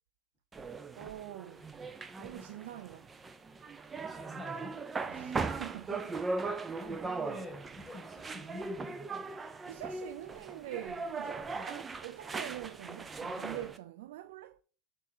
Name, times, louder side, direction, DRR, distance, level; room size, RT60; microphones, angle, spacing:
sound 1, 0.5-13.8, right 3 dB, 20° right, 0.5 m, -39 dB
voice 1, 1.0-1.6 2.2-3.1 5.1-6.2 9.7-14.6, right 14 dB, 75° right, 0.4 m, -45 dB
voice 2, 3.8-4.9 6.8-9.4 11.5-11.7, left 1 dB, ahead, 1.5 m, -47 dB
6.6 x 3.6 x 4.3 m
supercardioid pair, 115°, 0 cm